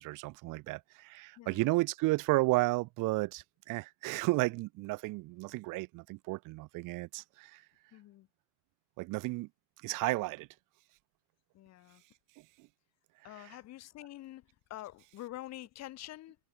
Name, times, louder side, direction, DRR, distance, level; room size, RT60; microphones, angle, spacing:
voice 1, 0.0-7.6 9.0-9.5 9.8-10.5 12.6-12.7, right 21 dB, 70° right, 0.6 m, -33 dB
voice 2, 1.4-1.7 7.9-8.3 11.5-12.0 13.2-16.4, left 15 dB, 50° left, 0.9 m, -47 dB
cardioid pair, 145°, 33 cm